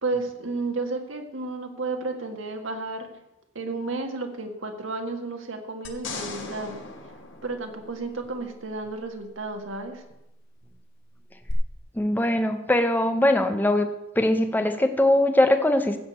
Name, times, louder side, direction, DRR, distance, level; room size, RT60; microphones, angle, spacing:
voice 1, 0.0-3.1 3.6-6.8 7.4-10.0, right 3 dB, 80° right, 4 dB, 1.7 m, -32 dB
sound 1, 5.8-8.3 11.5-11.6, left 3 dB, 70° left, 1.7 m, -38 dB
voice 2, 11.9-13.9 14.2-16.0, left 1 dB, 10° left, 8 dB, 0.8 m, -21 dB
15.0 x 5.0 x 8.1 m, 0.93 s
head